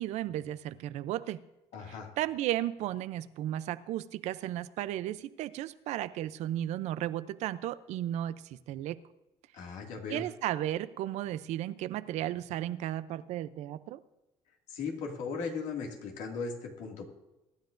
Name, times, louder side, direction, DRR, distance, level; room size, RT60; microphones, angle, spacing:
voice 1, 0.0-1.4 2.2-9.0 10.1-14.0, right 13 dB, 80° right, 15 dB, 0.5 m, -34 dB
voice 2, 1.7-2.1 9.5-10.2 14.7-17.0, left 5 dB, 80° left, 1 dB, 2.2 m, -37 dB
23.0 x 10.5 x 2.6 m, 1.0 s
cardioid pair, 90°, 12 cm